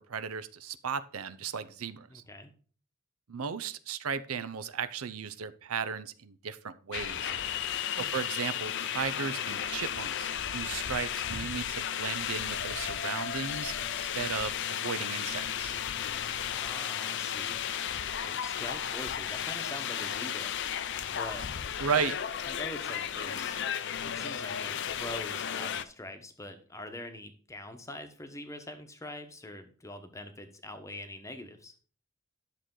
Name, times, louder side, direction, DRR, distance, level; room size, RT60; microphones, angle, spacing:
voice 1, 0.1-2.2 3.3-7.3 7.9-15.7 21.8-22.1, right 6 dB, 85° right, 13 dB, 0.6 m, -35 dB
voice 2, 2.1-2.5 7.9-8.1 16.5-17.6 18.2-20.5 21.2-21.5 21.9-22.1 22.4-23.6 24.0-31.7, left 1 dB, 15° left, 6 dB, 1.0 m, -44 dB
sound 1, 6.9-25.8, left 9 dB, 55° left, 0.5 m, -34 dB
10.5 x 6.5 x 3.8 m, 0.41 s
head